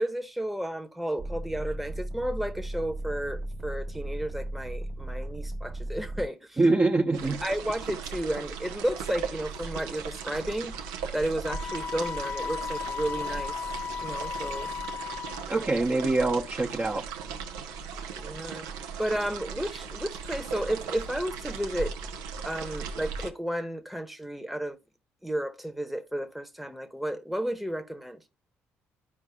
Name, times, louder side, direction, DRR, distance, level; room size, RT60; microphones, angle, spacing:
voice 1, 0.0-6.6 7.4-10.8 11.1-13.6 14.0-14.7 15.5-15.6 18.1-21.9 22.4-24.8 25.2-28.2, right 1 dB, ahead, 1.0 m, -32 dB
sound 1, 1.2-6.3 7.0-7.6, right 1 dB, 55° right, 1.4 m, -36 dB
voice 2, 6.6-7.4 15.5-17.0, right 2 dB, 25° right, 0.7 m, -24 dB
sound 2, 7.1-23.3, right 6 dB, 85° right, 0.6 m, -38 dB
Wind instrument woodwind instrument, 11.4-15.6, left 7 dB, 30° left, 0.3 m, -35 dB
11.0 x 4.7 x 2.3 m
hypercardioid pair, 55°, 6 cm